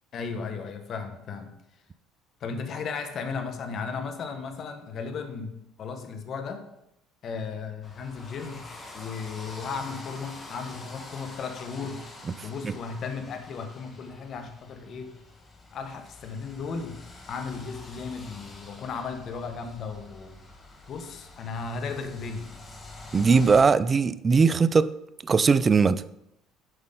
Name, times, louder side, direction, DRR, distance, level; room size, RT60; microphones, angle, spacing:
voice 1, 0.1-1.6 2.4-6.6 7.2-8.7 8.9-12.1 12.4-15.2 15.7-17.0 17.3-20.4 20.9-22.5, left 5 dB, 50° left, 1.1 m, -35 dB
sound 1, 7.8-23.6, left 2 dB, 25° left, 1.4 m, -46 dB
voice 2, 12.3-12.7 23.1-24.9 25.2-26.0, right 5 dB, 30° right, 0.3 m, -20 dB
7.9 x 5.3 x 3.8 m
supercardioid pair, 95°, 0 cm